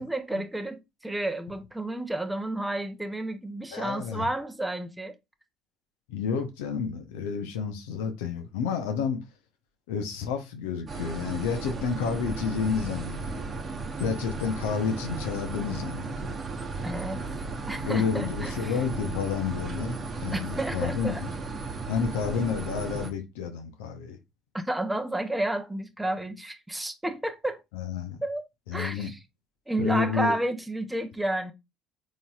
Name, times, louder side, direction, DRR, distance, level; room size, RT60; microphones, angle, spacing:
voice 1, 0.0-5.1 16.8-18.8 20.3-21.2 24.5-27.6 28.2-28.4 28.7-29.2 29.7-31.5, right 1 dB, 10° right, 0.7 m, -31 dB
voice 2, 3.7-4.3 6.1-9.2 9.9-13.4 14.0-16.3 17.9-21.3 21.9-24.2 27.7-28.2 28.7-29.1 29.8-30.4, left 6 dB, 80° left, 0.7 m, -30 dB
sound 1, 10.9-23.1, right 3 dB, 40° right, 0.9 m, -35 dB
3.9 x 3.1 x 2.3 m
hypercardioid pair, 65°, 0 cm